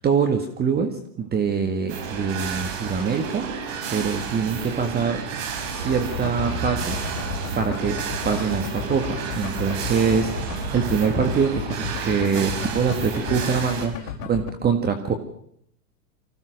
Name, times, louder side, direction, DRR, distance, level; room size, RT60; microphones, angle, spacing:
voice 1, 0.0-5.2 5.7-7.0 7.5-15.1, right 6 dB, 20° right, 6 dB, 1.8 m, -24 dB
sound 1, 1.9-13.9, right 6 dB, 55° right, 4.9 m, -32 dB
sound 2, 5.7-12.9, right 3 dB, 80° right, 7.8 m, -37 dB
sound 3, 6.0-14.5, left 8 dB, 55° left, 4.5 m, -33 dB
25.0 x 16.0 x 6.5 m, 0.69 s
hypercardioid pair, 120°, 49 cm